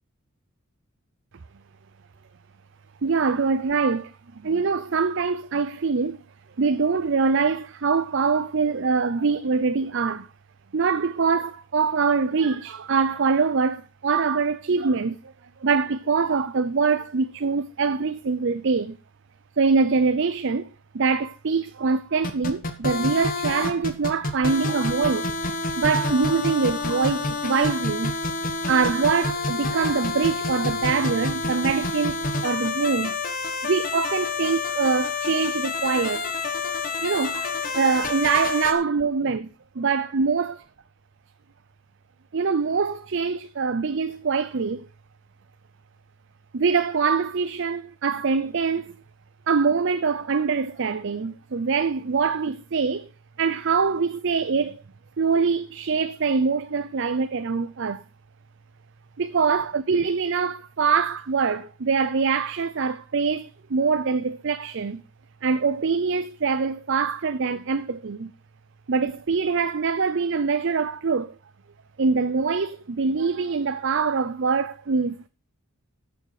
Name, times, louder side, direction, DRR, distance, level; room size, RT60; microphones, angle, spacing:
voice 1, 3.0-4.1 4.4-6.2 6.6-10.3 10.7-15.3 15.6-19.0 19.6-20.7 20.9-25.4 25.8-28.1 28.7-33.1 33.6-36.3 37.0-39.5 39.8-40.6 42.3-44.9 46.5-49.0 49.5-53.1 53.4-54.8 55.2-58.0 59.2-65.0 65.4-68.3 68.9-71.3 72.0-75.3, right 5 dB, 55° right, 0.5 m, -24 dB
sound 1, 22.2-38.7, left 3 dB, 40° left, 1.4 m, -28 dB
13.5 x 7.1 x 4.8 m
head